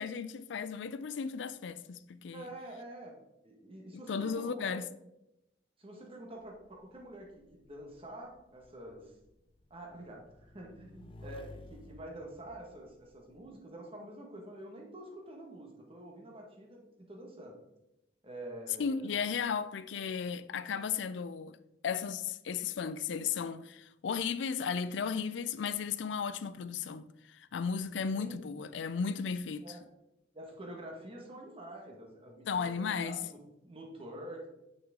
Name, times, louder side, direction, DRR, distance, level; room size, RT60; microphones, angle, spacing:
voice 1, 0.0-2.5 3.9-4.8 18.8-21.6 21.8-29.8 32.5-33.2, left 6 dB, 85° left, 0.4 m, -35 dB
voice 2, 2.3-3.1 3.4-4.8 5.8-9.1 9.7-17.6 18.2-19.3 28.2-28.4 29.6-29.8 30.3-34.5, right 1 dB, 30° right, 1.5 m, -47 dB
Motorcycle / Engine, 6.4-13.5, left 2 dB, 30° left, 0.5 m, -55 dB
6.3 x 6.1 x 3.7 m
head